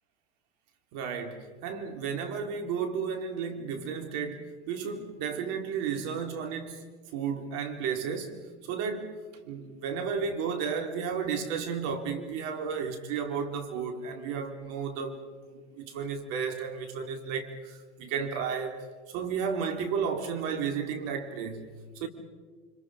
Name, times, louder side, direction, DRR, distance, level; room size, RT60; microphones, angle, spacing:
voice 1, 0.9-6.8 7.1-9.1 9.5-18.8 19.1-21.7 22.0-22.1, right 6 dB, 60° right, 3.9 m, -33 dB
29.5 x 26.5 x 5.0 m
hypercardioid pair, 105°, 32 cm